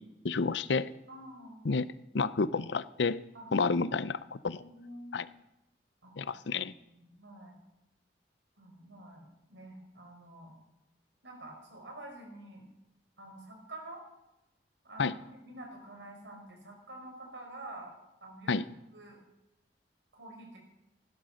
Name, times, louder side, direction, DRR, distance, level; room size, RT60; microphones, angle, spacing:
voice 1, 0.2-0.9 1.6-1.9 2.1-3.2 3.5-4.6 5.1-5.2 6.2-6.7 15.0-15.1 18.5-18.6, left 4 dB, 80° left, 16 dB, 0.6 m, -30 dB
voice 2, 1.1-1.6 3.3-3.5 4.6-5.2 6.0-6.1 6.5-7.6 8.6-10.6 11.2-12.6 13.2-14.0 14.8-17.9 18.2-19.2 20.1-20.6, right 1 dB, 85° right, 2 dB, 4.7 m, -48 dB
16.0 x 12.0 x 6.4 m, 0.93 s
head